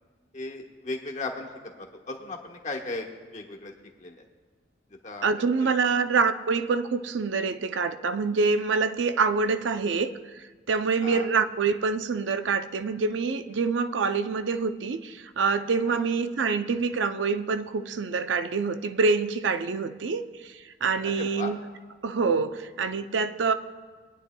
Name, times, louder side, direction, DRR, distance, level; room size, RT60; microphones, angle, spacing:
voice 1, 0.3-1.5 1.8-3.7 4.0-4.2 4.9-5.3 5.6-5.9 11.0-11.3 15.9-16.0 21.0-21.5, left 2 dB, 40° left, 1 dB, 1.2 m, -36 dB
voice 2, 5.2-21.6 22.0-23.5, right 4 dB, 85° right, 10 dB, 0.5 m, -26 dB
22.5 x 9.6 x 2.2 m, 1.4 s
head